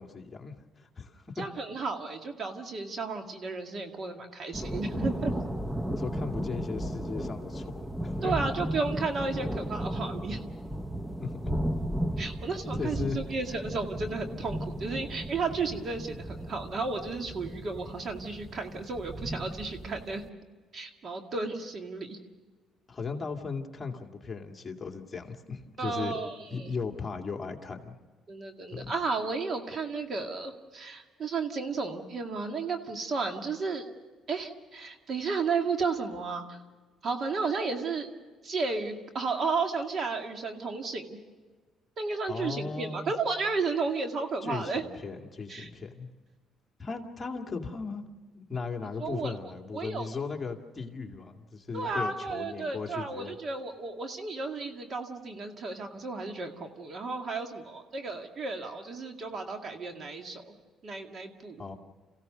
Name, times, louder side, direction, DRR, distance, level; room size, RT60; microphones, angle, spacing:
voice 1, 0.0-1.3 6.0-8.3 11.2-11.4 12.8-13.2 22.9-26.2 26.5-28.0 28.7-28.9 42.3-43.1 44.4-46.1 46.8-48.0 48.3-53.3 61.6-61.7, left 4 dB, 25° left, 2 dB, 2.2 m, -37 dB
voice 2, 1.4-5.3 8.2-10.4 12.2-20.2 20.7-22.2 25.8-26.7 28.3-33.9 34.3-36.6 37.0-38.1 38.4-41.2 42.0-44.9 45.5-45.7 49.0-49.3 49.7-50.1 51.7-60.5 60.8-61.7, right 4 dB, 45° right, 4 dB, 2.1 m, -33 dB
sound 1, 4.5-20.3, right 1 dB, 10° right, 0.8 m, -35 dB
27.5 x 16.0 x 6.7 m, 1.4 s
cardioid pair, 100°, 0 cm